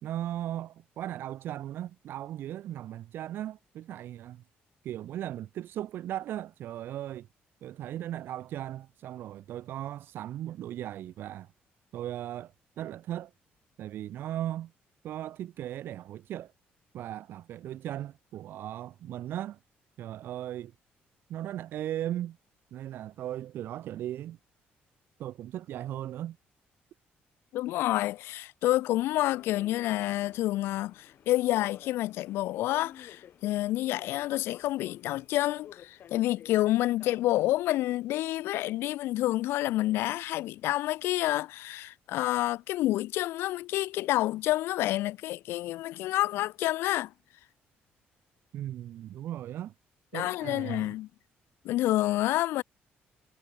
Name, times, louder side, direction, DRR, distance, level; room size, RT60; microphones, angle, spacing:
voice 1, 0.0-4.4 4.8-7.3 7.6-11.5 11.9-13.3 13.8-14.7 15.0-16.5 16.9-19.6 20.0-20.7 21.3-22.4 22.7-24.4 25.2-26.4 48.5-49.7 50.1-50.9, right 12 dB, 65° right, 0.5 m, -37 dB
voice 2, 27.5-47.1 50.1-51.1 51.6-52.6, left 16 dB, 85° left, 0.3 m, -28 dB
Subway metro underground, 29.0-38.7, left 9 dB, 55° left, 4.2 m, -53 dB
cardioid pair, 125°, 4 cm